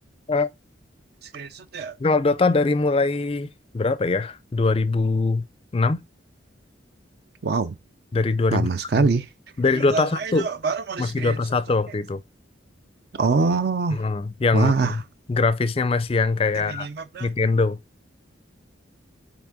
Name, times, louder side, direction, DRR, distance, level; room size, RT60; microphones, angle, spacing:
voice 1, 1.3-2.0 7.4-7.8 8.5-9.3 9.7-11.4 13.1-14.0 14.5-15.0 16.5-17.3, right 4 dB, 55° right, 0.4 m, -24 dB
voice 2, 2.0-5.5 5.7-6.0 8.1-8.7 9.0-9.1 9.6-10.5 11.0-12.2 13.9-15.0 15.3-16.9 17.2-17.8, left 3 dB, 30° left, 0.4 m, -22 dB
5.9 x 4.4 x 3.6 m
head